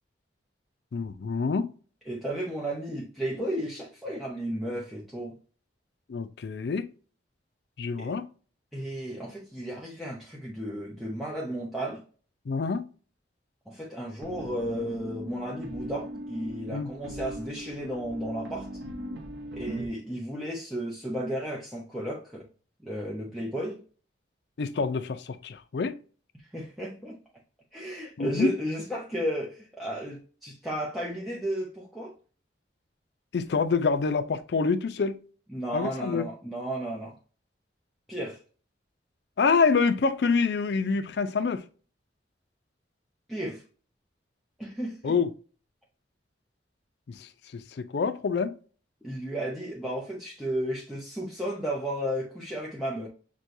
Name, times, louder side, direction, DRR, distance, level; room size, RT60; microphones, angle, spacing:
voice 1, 0.9-1.7 6.1-6.9 7.8-8.3 12.5-12.9 16.7-16.9 24.6-26.0 28.2-28.5 33.3-35.2 35.7-36.2 39.4-41.6 45.0-45.3 47.1-48.5, left 5 dB, 65° left, 0.4 m, -26 dB
voice 2, 2.1-5.4 8.0-8.1 8.7-12.0 13.7-18.8 19.5-22.5 22.8-23.8 26.3-27.2 27.7-32.1 35.5-37.2 38.1-38.4 43.3-43.6 44.6-45.2 49.0-53.1, right 1 dB, ahead, 0.6 m, -33 dB
sound 1, 14.2-19.9, equal, 85° right, 0.8 m, -39 dB
6.0 x 2.2 x 2.6 m
head